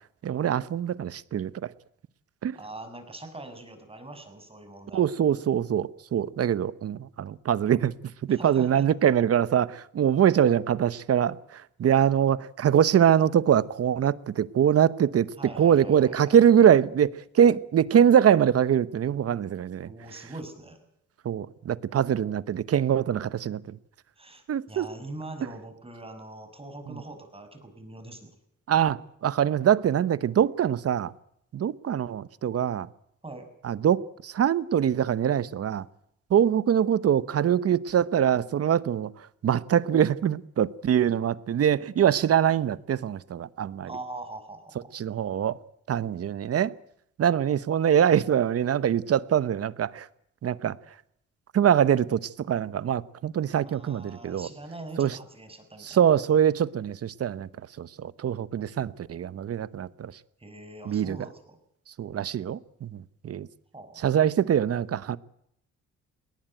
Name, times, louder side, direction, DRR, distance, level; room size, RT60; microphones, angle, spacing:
voice 1, 0.2-1.5 2.4-2.6 4.9-7.9 8.3-15.3 15.6-17.1 17.3-19.9 21.2-23.8 24.5-24.9 28.7-31.1 31.5-32.9 33.6-35.8 36.3-39.1 39.4-43.9 44.9-45.6 45.9-46.7 47.2-50.1 50.4-50.8 51.5-54.5 55.0-55.2 55.8-57.5 57.8-60.1 60.9-61.2 62.0-63.5 64.0-65.2, right 9 dB, 50° right, 1.0 m, -23 dB
voice 2, 2.5-5.1 8.3-8.9 15.4-16.4 19.8-20.9 24.2-28.3 33.2-33.5 43.9-44.9 53.6-56.0 60.4-61.6 63.7-64.3, right 2 dB, 20° right, 6.5 m, -42 dB
20.5 x 19.5 x 9.0 m
cardioid pair, 90°, 30 cm